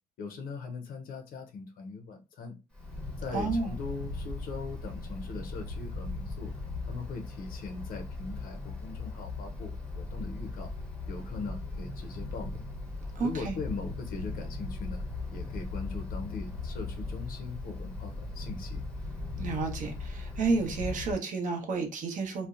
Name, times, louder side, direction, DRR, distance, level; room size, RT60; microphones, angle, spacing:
voice 1, 0.2-2.6 3.2-6.5 6.9-10.7 11.1-12.7 13.2-15.0 15.3-18.8, left 4 dB, 55° left, 0.5 m, -40 dB
Wind, 2.7-21.1, left 3 dB, 5° left, 0.7 m, -38 dB
voice 2, 3.3-3.7 13.1-13.6 19.4-22.5, right 4 dB, 50° right, 0.8 m, -31 dB
2.6 x 2.0 x 2.3 m
cardioid pair, 110°, 17 cm